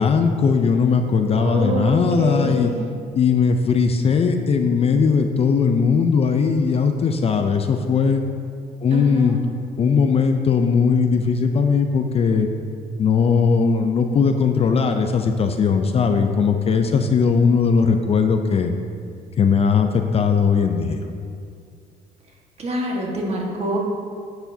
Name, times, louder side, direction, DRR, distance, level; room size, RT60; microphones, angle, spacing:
voice 1, 0.0-2.7 3.1-8.2 8.8-9.4 9.8-12.5 13.0-18.7 19.4-21.1, left 5 dB, 35° left, 6 dB, 0.5 m, -19 dB
voice 2, 1.3-2.7 8.9-9.4 22.6-23.8, right 1 dB, 35° right, -1 dB, 1.6 m, -26 dB
10.0 x 6.8 x 2.8 m, 2.3 s
cardioid pair, 110°, 17 cm